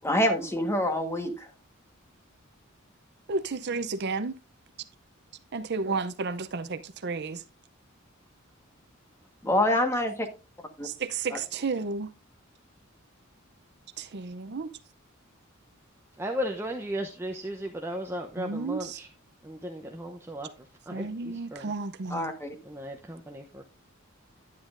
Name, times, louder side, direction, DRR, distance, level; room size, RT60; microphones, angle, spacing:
voice 1, 0.0-1.5 9.4-10.3 10.8-10.9 11.3-11.4 22.1-22.5, left 1 dB, 15° left, 1.4 m, -26 dB
voice 2, 3.3-4.3 5.5-7.4 10.8-12.1 14.0-14.7 18.4-19.0 20.9-22.3, right 4 dB, 55° right, 0.6 m, -32 dB
voice 3, 16.2-19.1 19.4-20.5 20.9-21.7 22.7-23.6, equal, 10° right, 0.7 m, -35 dB
10.5 x 9.4 x 2.5 m
head